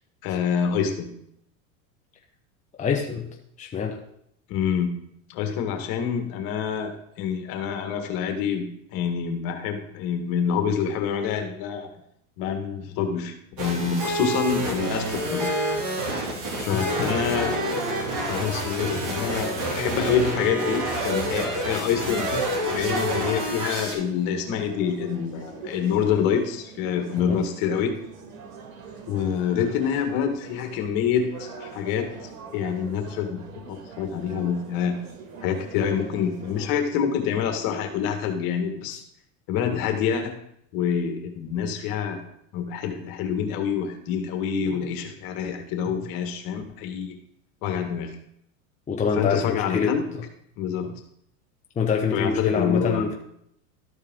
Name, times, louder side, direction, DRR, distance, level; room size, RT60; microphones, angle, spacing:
voice 1, 0.2-1.1 4.5-4.9 5.3-11.9 12.4-15.6 16.6-17.6 18.3-22.3 22.7-28.0 29.1-32.1 32.5-35.0 35.4-39.0 39.5-40.3 40.7-42.2 42.5-47.2 47.6-48.2 49.1-50.1 50.6-50.9 52.1-53.1, left 7 dB, 55° left, 5 dB, 1.8 m, -26 dB
voice 2, 2.8-3.3 3.6-4.0 16.7-16.8 17.4-17.5 27.2-27.4 38.9-39.0 48.9-49.9 51.8-53.1, left 5 dB, 20° left, 1 dB, 0.9 m, -25 dB
sound 1, 13.6-23.9, right 1 dB, 45° right, 2.7 m, -28 dB
sound 2, 17.5-36.7, right 5 dB, 80° right, 1.9 m, -44 dB
13.0 x 4.5 x 3.8 m, 0.73 s
supercardioid pair, 115°, 41 cm